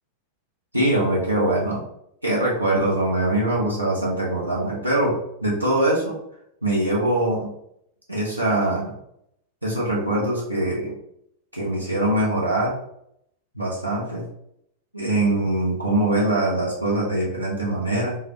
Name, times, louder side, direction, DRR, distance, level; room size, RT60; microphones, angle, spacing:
voice 1, 0.7-1.8 2.2-6.2 6.6-7.5 8.1-8.9 9.6-10.9 11.5-12.7 13.5-14.2 14.9-18.2, right 1 dB, 85° right, -5 dB, 0.9 m, -23 dB
3.8 x 2.3 x 2.9 m, 0.73 s
figure-of-eight pair, 90°, 0 cm